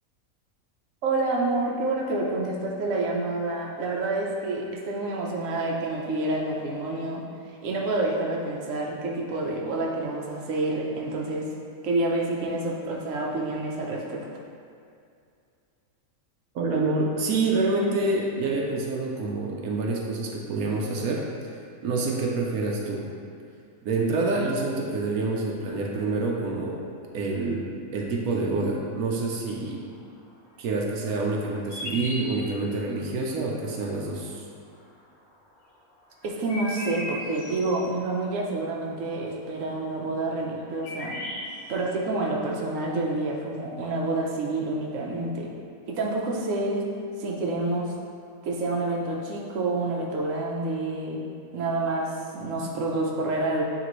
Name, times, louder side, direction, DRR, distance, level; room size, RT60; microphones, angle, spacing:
voice 1, 1.0-11.5 11.8-14.3 36.2-41.2 41.7-45.5 45.9-46.9 47.2-47.9 48.4-51.2 51.5-53.6, right 2 dB, 65° right, -2 dB, 1.1 m, -28 dB
voice 2, 16.5-23.0 23.8-26.8 27.1-29.8 30.6-34.4, right 3 dB, 85° right, -2 dB, 1.2 m, -27 dB
sound 1, 31.4-32.8 34.8-34.9 36.1-37.8 40.3-40.4 40.6-41.8, left 1 dB, 80° left, 1.5 m, -36 dB
9.2 x 3.4 x 3.1 m, 2.4 s
omnidirectional pair, 1.5 m